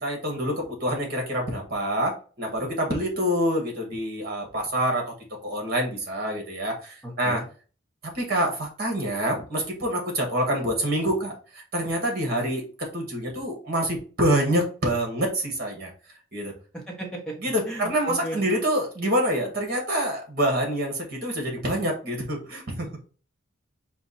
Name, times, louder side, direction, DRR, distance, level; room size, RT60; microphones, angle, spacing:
voice 1, 0.0-2.1 2.4-5.0 5.4-7.4 8.1-11.3 11.7-12.6 12.9-15.9 16.3-16.5 17.4-22.9, equal, 45° right, 1 dB, 1.6 m, -26 dB
voice 2, 7.0-7.4 16.7-17.3 17.7-18.4, right 1 dB, 5° left, -2 dB, 1.2 m, -34 dB
4.7 x 2.5 x 4.2 m, 0.37 s
head